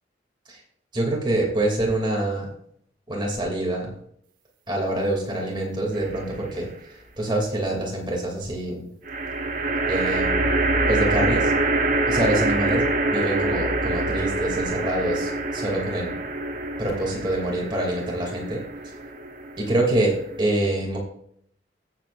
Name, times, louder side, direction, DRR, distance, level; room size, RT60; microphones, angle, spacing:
voice 1, 0.9-2.5 3.1-3.9 4.7-6.7 7.2-8.9 9.9-10.5 10.9-11.5 12.1-12.8 13.1-16.1 16.8-18.6 19.6-21.0, right 1 dB, 25° right, -1 dB, 2.7 m, -25 dB
sound 1, 5.9-6.6 9.0-20.4, right 2 dB, 50° right, 1.2 m, -25 dB
16.5 x 7.7 x 2.6 m, 0.67 s
head